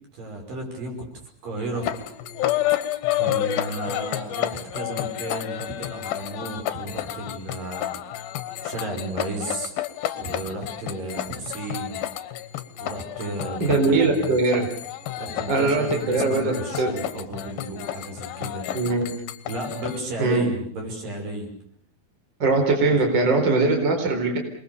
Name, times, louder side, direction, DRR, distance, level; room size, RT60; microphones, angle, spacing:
voice 1, 0.1-1.1 1.4-1.9 3.1-8.0 8.6-9.7 10.2-12.0 12.8-14.4 15.2-18.7 19.5-21.5 22.9-23.0, right 2 dB, 65° right, 2 dB, 7.4 m, -33 dB
sound 1, 1.7-20.0, left 13 dB, 80° left, 3.0 m, -30 dB
voice 2, 13.6-14.7 15.5-16.9 18.7-19.2 20.2-20.5 22.4-24.4, right 3 dB, 30° right, 3 dB, 4.6 m, -21 dB
28.0 x 21.5 x 7.0 m, 0.62 s
omnidirectional pair, 4.2 m